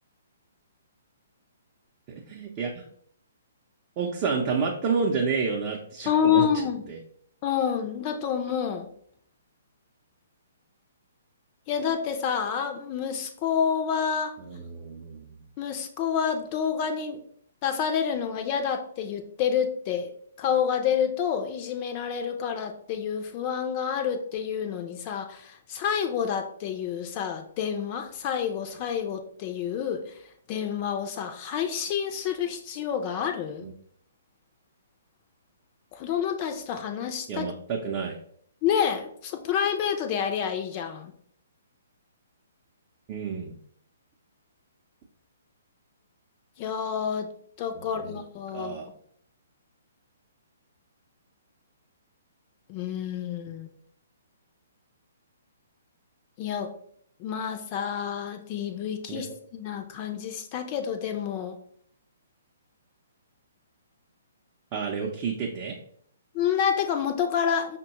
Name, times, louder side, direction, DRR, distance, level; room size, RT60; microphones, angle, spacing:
voice 1, 2.2-2.8 4.0-6.5 6.9-7.0 14.5-15.4 33.6-33.7 37.3-38.2 43.1-43.6 47.8-48.2 48.5-48.9 59.1-59.2 64.7-65.8, right 5 dB, 35° right, -1 dB, 0.5 m, -30 dB
voice 2, 6.1-6.9 7.4-8.9 11.7-14.4 15.6-17.2 17.6-20.1 20.4-30.2 30.5-33.7 35.9-37.5 38.6-41.1 46.6-47.3 47.6-48.8 52.7-53.7 56.4-56.7 57.2-61.6 66.3-67.8, left 8 dB, 35° left, 6 dB, 0.4 m, -28 dB
5.3 x 2.2 x 2.9 m, 0.63 s
hypercardioid pair, 135°, 0 cm